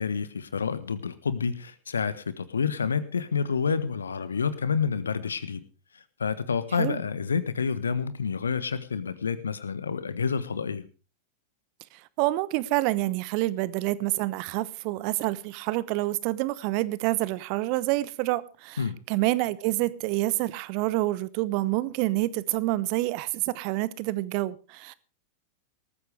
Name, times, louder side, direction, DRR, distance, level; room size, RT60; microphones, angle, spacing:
voice 1, 0.0-5.6 6.2-10.8 18.8-19.0, left 6 dB, 70° left, 1.3 m, -28 dB
voice 2, 12.2-24.9, right 18 dB, 45° right, 0.9 m, -27 dB
19.0 x 14.0 x 3.4 m
figure-of-eight pair, 90°, 0 cm